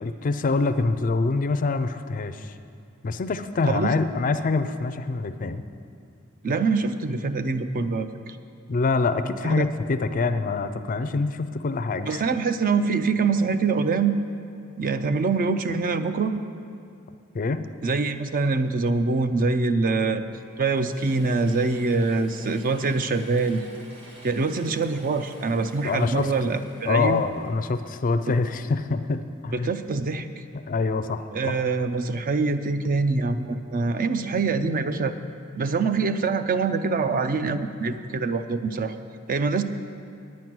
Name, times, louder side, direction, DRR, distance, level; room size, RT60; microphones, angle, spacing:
voice 1, 0.0-2.5 3.0-5.6 8.7-12.2 17.3-17.7 25.8-26.5 26.9-29.7 30.5-31.5, left 3 dB, 40° left, 11 dB, 0.4 m, -25 dB
voice 2, 6.4-8.4 9.4-9.6 12.1-14.2 14.8-16.3 17.8-20.2 20.6-23.6 24.2-27.2 29.5-30.3 31.3-35.1 35.6-38.9 39.3-39.6, right 4 dB, 40° right, 10 dB, 0.4 m, -24 dB
Mechanisms / Drill, 20.3-28.9, right 1 dB, 55° right, 1.9 m, -49 dB
9.4 x 9.2 x 6.0 m, 2.5 s
head